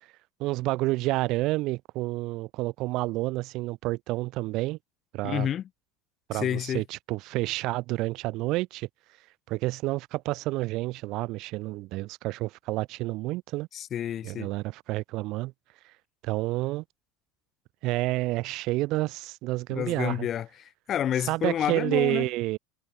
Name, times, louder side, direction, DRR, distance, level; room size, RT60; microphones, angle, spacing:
voice 1, 0.4-4.8 5.1-5.5 6.3-8.9 9.5-13.7 14.2-15.5 16.2-16.8 17.8-20.3 21.3-22.6, right 19 dB, 55° right, 2.0 m, -29 dB
voice 2, 5.2-5.6 6.3-6.8 13.7-14.5 19.7-22.2, left 10 dB, 35° left, 1.2 m, -29 dB
supercardioid pair, 120°, 0 cm